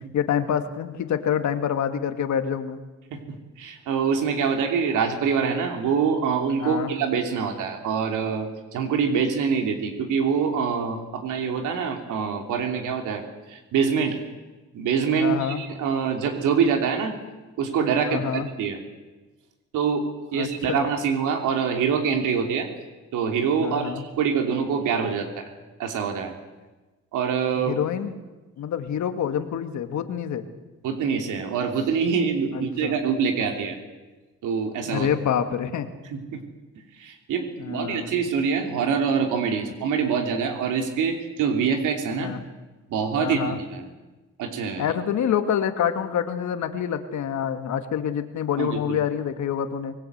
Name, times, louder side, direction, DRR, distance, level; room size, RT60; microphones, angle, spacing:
voice 1, 0.1-2.8 6.6-6.9 15.2-15.6 18.0-18.5 20.3-20.9 23.6-24.0 27.7-28.2 28.6-30.4 32.5-33.0 34.9-35.9 37.6-38.2 42.1-42.4 43.2-43.6 44.8-49.9, left 8 dB, 70° left, 8 dB, 2.1 m, -27 dB
voice 2, 3.1-14.2 14.7-17.1 17.6-18.8 19.7-22.7 23.1-25.4 25.8-26.4 27.1-27.8 30.8-33.8 34.4-35.1 36.1-36.4 37.0-42.3 42.9-43.9 44.4-44.9 48.6-49.0, right 6 dB, 85° right, 4 dB, 3.2 m, -25 dB
24.5 x 19.5 x 8.1 m, 1.2 s
cardioid pair, 90°, 30 cm